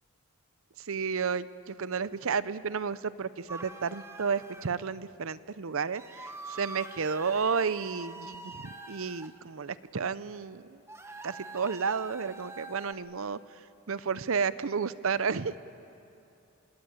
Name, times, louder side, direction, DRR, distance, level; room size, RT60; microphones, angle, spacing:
voice 1, 0.8-10.8 11.2-13.4 13.9-15.6, right 5 dB, 65° right, 16 dB, 0.6 m, -32 dB
sound 1, 3.5-4.7 5.9-9.3 10.9-12.9, right 2 dB, 10° right, 1.1 m, -45 dB
27.0 x 19.5 x 9.0 m, 2.7 s
head